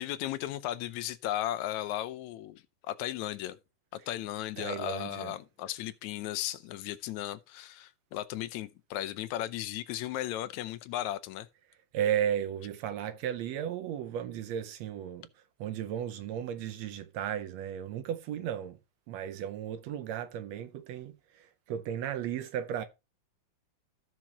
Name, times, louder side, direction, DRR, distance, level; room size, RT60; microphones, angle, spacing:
voice 1, 0.0-3.6 4.1-11.5, left 13 dB, 80° left, 1.9 m, -36 dB
voice 2, 4.6-5.4 11.9-15.3 15.6-18.8 19.1-22.8, right 10 dB, 75° right, 1.8 m, -35 dB
14.5 x 6.2 x 2.9 m
omnidirectional pair, 3.3 m